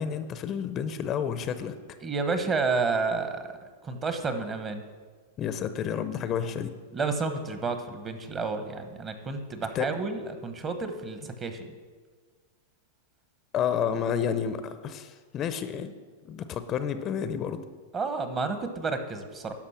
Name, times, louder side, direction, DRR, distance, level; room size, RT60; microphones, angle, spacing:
voice 1, 0.0-1.7 5.4-6.7 9.7-10.0 13.5-15.9 16.2-17.6, left 8 dB, 35° left, 11 dB, 0.6 m, -30 dB
voice 2, 2.0-3.5 3.8-4.8 6.9-11.7 17.9-19.5, right 4 dB, 25° right, 8 dB, 1.1 m, -30 dB
12.0 x 5.4 x 5.8 m, 1.5 s
hypercardioid pair, 120°, 0 cm